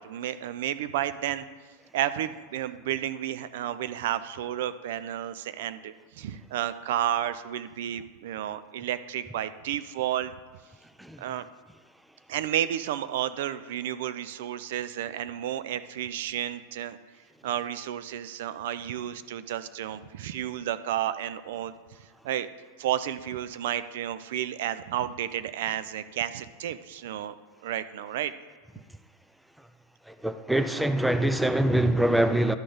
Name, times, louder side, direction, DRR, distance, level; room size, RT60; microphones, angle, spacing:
voice 1, 0.0-1.4 1.9-10.3 11.2-11.5 12.3-17.0 17.4-21.7 22.2-22.5 22.8-27.3 27.6-28.3, right 11 dB, 75° right, 0.4 m, -31 dB
voice 2, 30.1-32.6, right 1 dB, 5° right, 0.5 m, -24 dB
12.5 x 4.3 x 5.0 m
hypercardioid pair, 100°, 0 cm